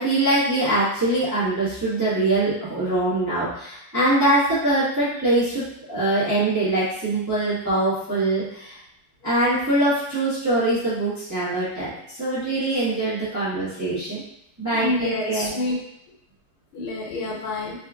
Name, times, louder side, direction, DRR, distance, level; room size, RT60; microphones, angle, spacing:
voice 1, 0.0-5.6 5.9-8.8 9.2-11.9 12.2-14.2 14.6-15.5, right 2 dB, 10° right, -11 dB, 0.9 m, -23 dB
voice 2, 14.7-15.7 16.7-17.7, left 2 dB, 90° left, -3 dB, 1.8 m, -27 dB
3.5 x 3.1 x 2.4 m, 0.78 s
omnidirectional pair, 2.3 m